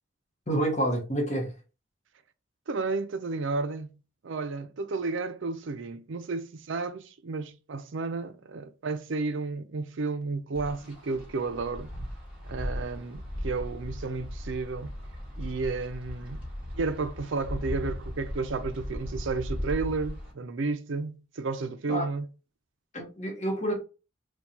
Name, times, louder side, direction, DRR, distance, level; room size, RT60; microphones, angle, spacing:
voice 1, 0.5-1.5 21.9-22.1 22.9-23.8, right 1 dB, 35° left, 1.1 m, -28 dB
voice 2, 2.7-4.0 4.2-11.9 12.4-14.9 15.4-16.5 16.7-22.2, right 3 dB, 70° right, 0.5 m, -32 dB
Wind, 10.6-20.3, equal, 5° right, 1.5 m, -37 dB
4.4 x 2.3 x 2.7 m
head